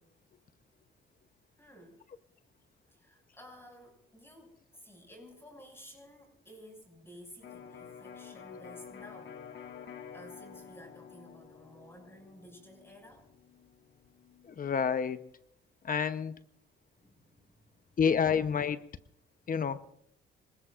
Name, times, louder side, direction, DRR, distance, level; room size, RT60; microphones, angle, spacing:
voice 1, 1.6-2.1 2.9-9.4 10.1-13.3 17.0-18.0, equal, 10° left, 2 dB, 6.6 m, -54 dB
Electric guitar, 7.4-15.2, left 7 dB, 65° left, 1.9 m, -50 dB
voice 2, 14.6-15.2 15.8-16.4 18.0-18.8 19.5-19.8, left 7 dB, 45° left, 12 dB, 0.9 m, -28 dB
25.5 x 20.5 x 2.5 m, 0.71 s
cardioid pair, 90°, 20 cm